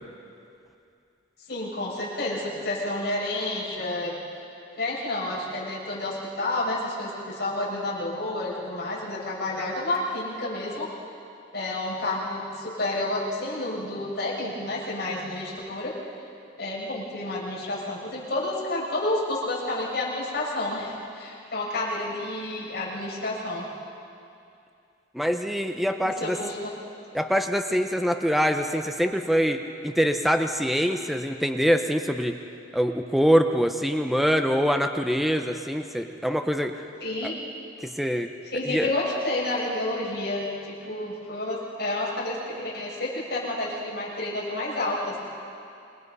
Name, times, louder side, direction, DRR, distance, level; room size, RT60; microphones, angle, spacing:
voice 1, 1.5-4.1 4.8-10.9 11.5-15.9 16.6-23.7 26.0-26.7 37.0-37.4 38.4-45.2, left 2 dB, 55° left, -6 dB, 6.9 m, -30 dB
voice 2, 25.1-26.4 27.1-32.3 32.7-36.7 37.8-38.3 38.6-38.9, equal, ahead, 5 dB, 0.7 m, -24 dB
27.5 x 22.0 x 5.5 m, 2.6 s
head